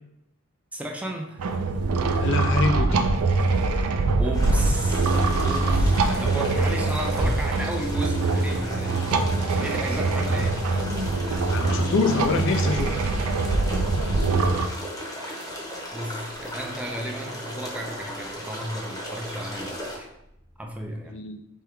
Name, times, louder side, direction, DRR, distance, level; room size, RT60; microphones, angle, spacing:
voice 1, 0.7-1.6 4.2-9.1 9.5-10.6 15.9-20.1 20.6-21.2, right 1 dB, 5° right, 1 dB, 0.4 m, -34 dB
sound 1, 1.4-14.7, right 3 dB, 80° right, 0.4 m, -23 dB
voice 2, 2.2-3.1 11.5-12.9 21.1-21.4, left 3 dB, 60° left, 6 dB, 0.5 m, -25 dB
sound 2, 4.3-20.0, equal, 15° left, 0.9 m, -36 dB
sound 3, 4.3-10.8 11.3-21.1, equal, 20° right, 1.0 m, -42 dB
4.4 x 3.4 x 3.5 m, 0.79 s
head